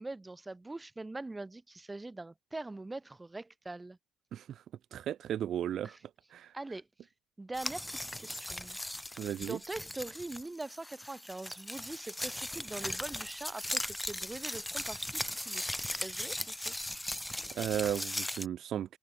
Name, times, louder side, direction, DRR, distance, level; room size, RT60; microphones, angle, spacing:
voice 1, 0.0-4.0 5.8-6.0 6.5-6.9 7.4-8.8 9.1-16.7, right 2 dB, 15° right, 3.0 m, -43 dB
voice 2, 4.9-6.0 6.3-6.5 9.2-9.6 17.5-19.0, right 10 dB, 70° right, 1.2 m, -34 dB
sound 1, 7.5-18.5, left 1 dB, 5° left, 1.7 m, -38 dB
cardioid pair, 90°, 0 cm